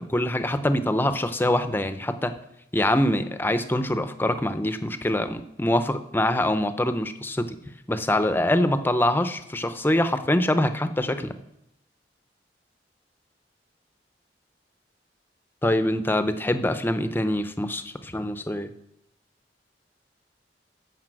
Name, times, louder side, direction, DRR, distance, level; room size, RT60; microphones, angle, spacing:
voice 1, 0.0-2.3 2.7-7.6 7.9-11.3 15.6-18.7, left 1 dB, 10° left, 10 dB, 0.6 m, -24 dB
13.5 x 5.5 x 7.5 m, 0.80 s
head